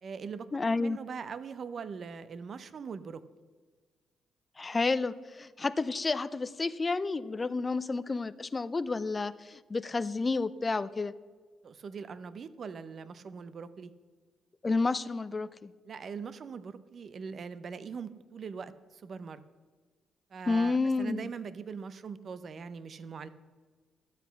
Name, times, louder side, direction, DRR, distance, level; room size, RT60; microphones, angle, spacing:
voice 1, 0.0-0.5 0.7-3.2 11.6-13.9 15.8-19.4 20.3-23.3, right 6 dB, 50° right, 14 dB, 0.7 m, -41 dB
voice 2, 0.5-1.0 4.6-11.1 14.6-15.7 20.5-21.3, left 3 dB, 25° left, 15 dB, 0.5 m, -30 dB
12.5 x 8.2 x 5.8 m, 1.4 s
cardioid pair, 90°, 0 cm